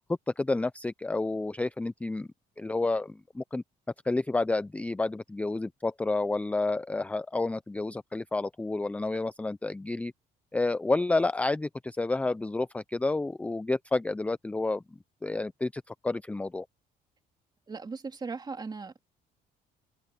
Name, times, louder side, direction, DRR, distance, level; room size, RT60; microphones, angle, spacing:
voice 1, 0.4-2.3 2.6-3.6 4.0-10.1 10.5-14.8 15.2-16.6, left 2 dB, 10° left, 0.4 m, -30 dB
voice 2, 17.7-19.0, right 4 dB, 25° right, 2.7 m, -38 dB
cardioid pair, 110°, 17 cm